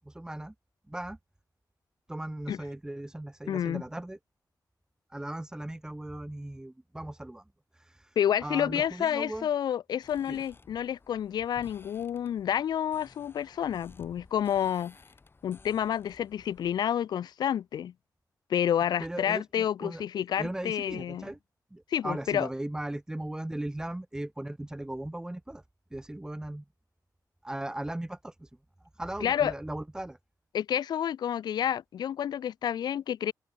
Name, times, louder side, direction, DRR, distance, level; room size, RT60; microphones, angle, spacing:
voice 1, 0.0-0.5 0.9-1.2 2.1-4.2 5.1-7.4 7.7-9.5 10.3-10.4 19.0-21.4 21.7-25.6 25.9-26.6 27.4-28.5 28.9-30.2, right 1 dB, 10° right, 0.6 m, -38 dB
voice 2, 3.5-3.8 8.2-14.9 15.4-17.9 18.5-21.3 21.9-22.5 29.2-29.5 30.5-33.3, left 9 dB, 90° left, 0.4 m, -29 dB
sound 1, 10.0-16.8, left 3 dB, 35° left, 3.8 m, -56 dB
wide cardioid pair, 105°, 7 cm